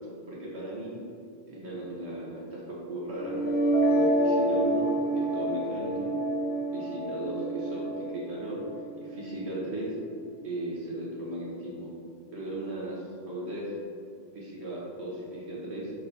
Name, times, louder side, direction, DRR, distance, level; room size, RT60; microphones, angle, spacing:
voice 1, 0.3-1.0 1.5-3.4 3.9-6.2 6.7-8.6 9.0-9.9 10.4-11.9 12.3-13.7 14.3-15.9, right 1 dB, 85° right, -5 dB, 1.7 m, -36 dB
sound 1, 3.2-9.2, right 1 dB, 15° left, 0.5 m, -28 dB
6.5 x 4.2 x 3.4 m, 2.5 s
omnidirectional pair, 1.1 m